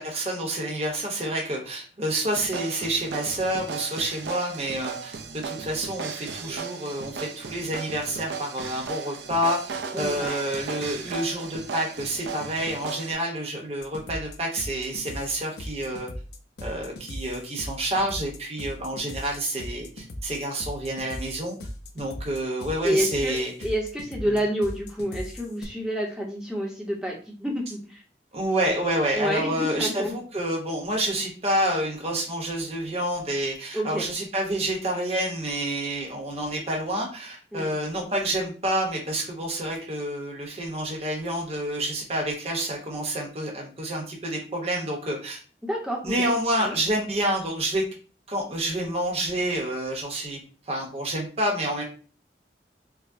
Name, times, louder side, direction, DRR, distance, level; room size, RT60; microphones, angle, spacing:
voice 1, 0.0-9.6 9.9-16.1 16.6-21.6 21.9-23.5 24.3-24.4 28.3-45.4 46.0-47.8 48.3-50.4 50.7-51.8, right 1 dB, 35° right, 0 dB, 0.8 m, -28 dB
sound 1, 2.3-13.1, right 5 dB, 80° right, 0.4 m, -36 dB
voice 2, 9.9-10.4 10.7-11.0 22.8-28.0 29.1-30.1 33.7-34.1 37.5-37.8 45.6-46.3 46.6-46.8, equal, 5° right, -2 dB, 0.7 m, -29 dB
sound 2, 13.8-25.6, left 1 dB, 70° left, 0.6 m, -39 dB
4.7 x 2.1 x 2.6 m, 0.37 s
head